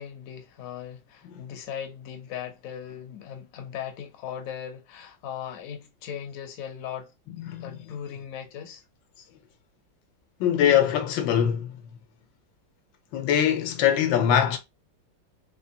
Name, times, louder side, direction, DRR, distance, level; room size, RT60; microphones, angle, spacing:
voice 1, 0.0-7.1 7.6-8.8, left 8 dB, 60° left, 1.0 m, -38 dB
voice 2, 7.3-7.8 10.4-11.8 13.1-14.6, left 9 dB, 80° left, 1.4 m, -23 dB
3.7 x 3.1 x 2.7 m
omnidirectional pair, 2.0 m